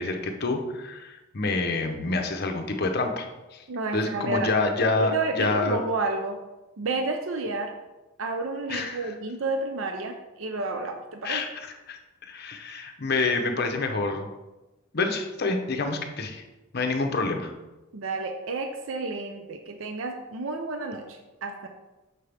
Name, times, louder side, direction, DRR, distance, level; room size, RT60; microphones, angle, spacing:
voice 1, 0.0-3.3 3.5-3.6 3.9-5.8 8.7-9.1 11.2-14.3 14.9-16.4 16.7-17.5, left 3 dB, 50° left, 5 dB, 0.7 m, -27 dB
voice 2, 3.7-4.5 5.0-6.4 6.8-7.7 8.2-11.4 17.9-21.7, right 3 dB, 70° right, 4 dB, 0.5 m, -30 dB
6.6 x 5.5 x 3.4 m, 1.1 s
head